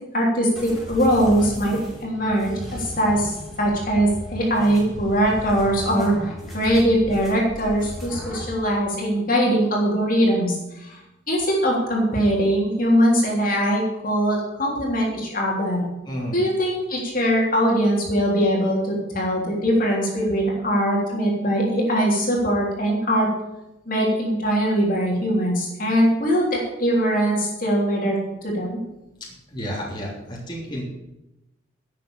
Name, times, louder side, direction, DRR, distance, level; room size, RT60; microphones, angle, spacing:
voice 1, 0.1-11.0 11.3-15.9 16.3-23.3 23.9-28.8, equal, 45° left, -2 dB, 3.4 m, -21 dB
sound 1, 0.5-8.6, equal, ahead, 3.7 m, -36 dB
voice 2, 16.1-16.4 29.5-30.8, equal, 25° left, -4 dB, 3.3 m, -31 dB
12.0 x 8.4 x 7.0 m, 0.95 s
head